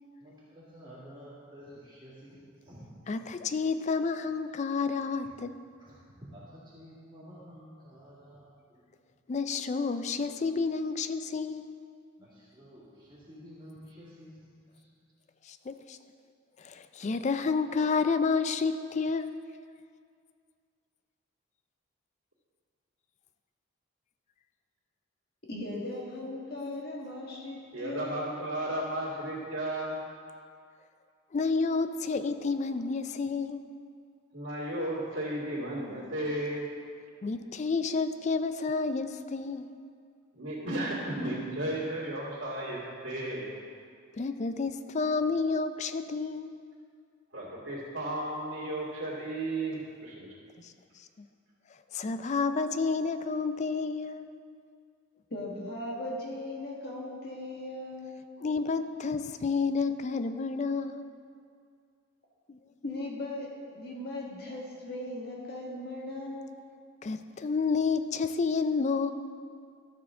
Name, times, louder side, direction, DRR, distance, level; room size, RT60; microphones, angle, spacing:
voice 1, 0.2-2.9 5.8-8.8 12.2-14.8, equal, 20° right, -11 dB, 1.9 m, -51 dB
voice 2, 3.1-5.6 9.3-11.8 15.5-16.0 16.6-19.5 31.3-33.7 37.2-39.8 44.2-46.6 50.6-50.7 51.2-51.3 51.9-54.3 58.4-61.2 62.5-62.6 67.0-69.1, left 4 dB, 35° left, 10 dB, 0.3 m, -30 dB
voice 3, 25.5-28.2 55.3-58.3 62.8-66.7, left 1 dB, 50° left, -2 dB, 1.7 m, -38 dB
voice 4, 27.7-30.0 34.3-36.6 40.3-43.4 47.3-50.3, right 1 dB, 75° right, -6 dB, 2.2 m, -34 dB
13.0 x 6.8 x 3.7 m, 2.2 s
head